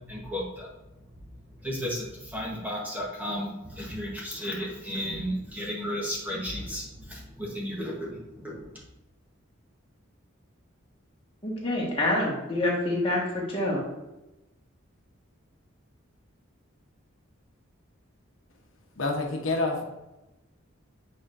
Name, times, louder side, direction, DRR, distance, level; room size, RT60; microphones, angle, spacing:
voice 1, 0.1-0.7 1.6-8.6, equal, 10° right, -4 dB, 1.1 m, -34 dB
voice 2, 11.4-13.8, left 1 dB, 25° left, -3 dB, 1.5 m, -27 dB
voice 3, 19.0-19.8, left 2 dB, 75° left, 1 dB, 0.9 m, -27 dB
8.4 x 4.3 x 2.6 m, 0.99 s
head